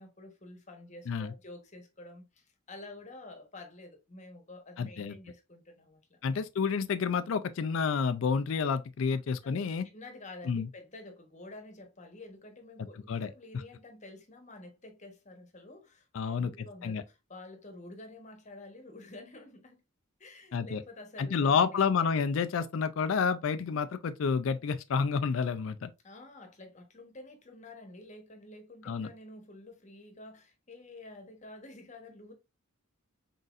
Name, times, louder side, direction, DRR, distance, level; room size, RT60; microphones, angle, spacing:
voice 1, 0.0-6.2 9.4-19.8 20.2-21.9 26.0-32.3, left 2 dB, 35° left, 1.0 m, -49 dB
voice 2, 4.8-5.2 6.2-9.8 10.5-10.7 13.1-13.3 16.1-17.0 20.5-20.8 21.2-25.9 28.9-29.1, left 5 dB, 65° left, 0.4 m, -29 dB
4.0 x 3.8 x 2.4 m
head